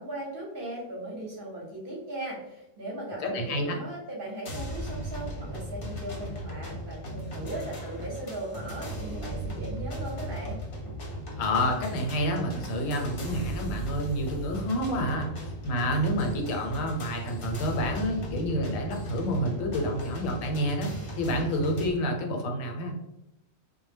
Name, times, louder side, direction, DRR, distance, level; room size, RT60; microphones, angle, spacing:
voice 1, 0.0-10.6, right 1 dB, 55° right, -3 dB, 0.7 m, -38 dB
voice 2, 3.2-3.8 11.4-20.9 21.2-22.9, equal, 85° left, 2 dB, 1.0 m, -29 dB
sound 1, 4.5-21.9, right 1 dB, 55° left, 0.7 m, -37 dB
2.1 x 2.0 x 3.2 m, 0.89 s
omnidirectional pair, 1.3 m